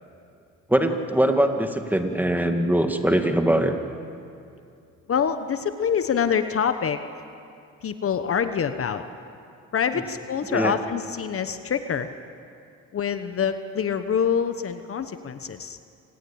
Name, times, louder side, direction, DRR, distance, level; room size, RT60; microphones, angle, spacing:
voice 1, 0.7-3.8 10.5-10.8, right 1 dB, 5° right, 5 dB, 2.1 m, -22 dB
voice 2, 5.1-7.0 7.8-9.0 9.7-12.1 12.9-15.8, left 7 dB, 50° left, 9 dB, 1.2 m, -25 dB
27.5 x 19.5 x 8.7 m, 2.5 s
cardioid pair, 90°, 30 cm